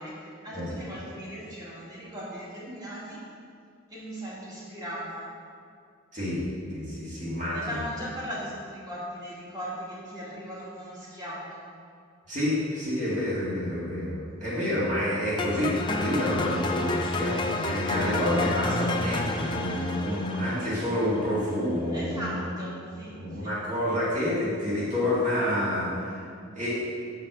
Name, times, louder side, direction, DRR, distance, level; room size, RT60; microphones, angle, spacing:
voice 1, 0.0-3.2 3.9-5.3 7.5-11.7 21.9-23.6 23.9-24.0, equal, 20° right, -7 dB, 1.8 m, -38 dB
voice 2, 6.1-7.7 12.3-22.4 23.2-26.2 26.5-26.7, left 1 dB, 35° right, -9 dB, 1.9 m, -28 dB
sound 1, 15.4-21.5, left 2 dB, 20° left, 0.4 m, -30 dB
6.4 x 5.6 x 6.0 m, 2.3 s
head